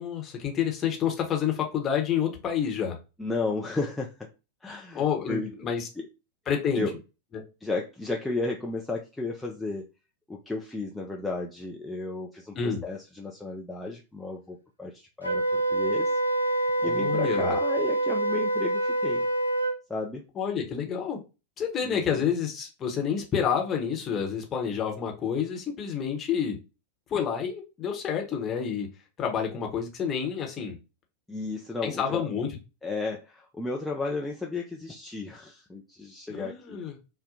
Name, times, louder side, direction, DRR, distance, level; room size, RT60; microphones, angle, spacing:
voice 1, 0.0-3.0 4.9-5.9 6.5-6.9 7.3-7.4 12.5-12.8 16.8-17.5 20.3-21.2 21.6-26.6 27.1-28.9 29.2-30.8 31.8-32.5 36.3-37.0, left 7 dB, 25° left, 0.9 m, -29 dB
voice 2, 3.2-4.1 4.6-5.5 6.0-6.1 6.7-6.9 7.6-9.8 10.3-16.1 16.4-19.3 19.9-20.2 21.8-22.2 31.3-32.3 32.8-36.8, left 3 dB, 5° left, 0.5 m, -33 dB
Wind instrument woodwind instrument, 15.2-19.8, right 1 dB, 85° right, 0.6 m, -26 dB
2.7 x 2.1 x 3.8 m
figure-of-eight pair, 90°, 0 cm